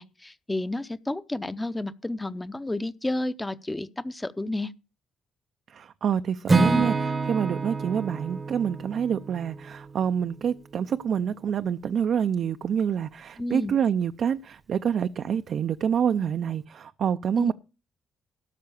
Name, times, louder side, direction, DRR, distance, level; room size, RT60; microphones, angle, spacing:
voice 1, 0.0-4.7 6.7-6.9 13.4-13.8 17.4-17.5, left 2 dB, 15° left, 0.7 m, -31 dB
voice 2, 5.7-17.5, right 8 dB, 60° right, 0.4 m, -27 dB
Acoustic guitar / Strum, 6.5-10.5, right 3 dB, 25° right, 0.8 m, -27 dB
12.5 x 5.6 x 7.0 m
cardioid pair, 90°, 0 cm